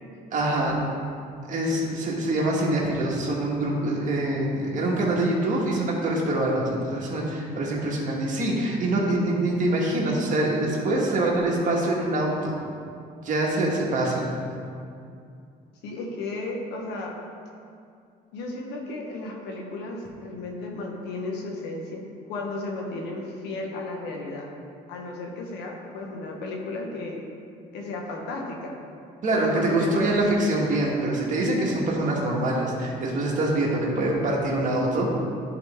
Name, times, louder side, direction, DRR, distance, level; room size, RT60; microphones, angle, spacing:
voice 1, 0.3-0.8 1.5-12.5 13.2-14.3 29.2-35.2, right 1 dB, 50° right, -3 dB, 1.6 m, -25 dB
voice 2, 15.8-17.1 18.3-24.5 24.9-27.3 27.7-28.7 29.3-30.2, left 2 dB, 85° left, 0 dB, 1.2 m, -34 dB
10.5 x 4.1 x 3.5 m, 2.4 s
cardioid pair, 110°, 17 cm